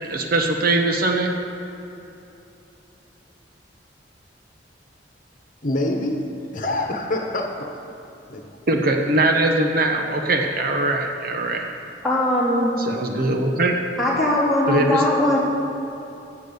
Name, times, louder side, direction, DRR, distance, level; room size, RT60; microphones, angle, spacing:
voice 1, 0.0-1.3 8.7-11.7 12.8-13.7 14.7-15.0, right 2 dB, 55° right, 2 dB, 1.1 m, -21 dB
voice 2, 5.6-8.0 8.3-8.4, left 1 dB, 50° left, 2 dB, 1.3 m, -26 dB
voice 3, 12.0-12.7 14.0-15.4, left 1 dB, ahead, -8 dB, 3.7 m, -20 dB
16.0 x 7.3 x 7.0 m, 2.9 s
head